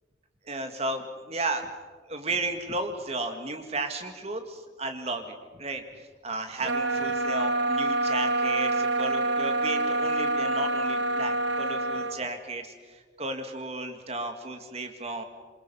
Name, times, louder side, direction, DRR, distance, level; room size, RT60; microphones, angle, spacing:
voice 1, 0.5-1.6 2.1-15.2, right 2 dB, 35° right, 6 dB, 2.0 m, -34 dB
sound 1, 6.6-12.2, right 2 dB, 70° right, 1.7 m, -26 dB
27.0 x 23.5 x 5.7 m, 1.5 s
head